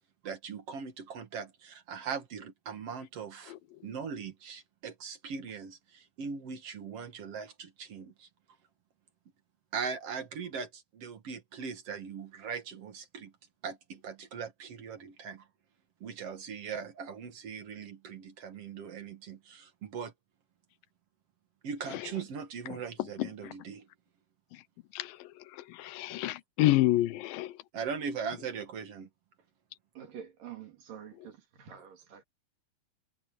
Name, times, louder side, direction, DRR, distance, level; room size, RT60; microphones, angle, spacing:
voice 1, 0.2-3.5 3.8-8.3 9.7-13.3 13.6-15.4 16.0-20.1 21.6-23.9 27.7-29.1, right 6 dB, 50° right, 2.2 m, -40 dB
voice 2, 22.7-23.5 24.5-24.6 24.9-27.6, left 16 dB, 85° left, 2.4 m, -30 dB
voice 3, 29.9-32.2, right 8 dB, 70° right, 4.6 m, -47 dB
omnidirectional pair, 4.0 m